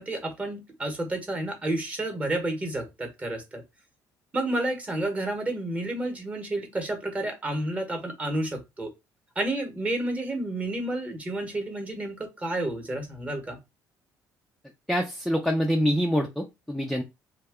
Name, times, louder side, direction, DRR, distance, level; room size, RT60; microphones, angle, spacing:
voice 1, 0.0-3.6 4.3-8.9 9.4-13.6, right 1 dB, 20° right, 5 dB, 1.0 m, -30 dB
voice 2, 14.9-17.0, equal, ahead, 2 dB, 0.4 m, -25 dB
2.8 x 2.2 x 3.4 m, 0.22 s
cardioid pair, 135°, 7 cm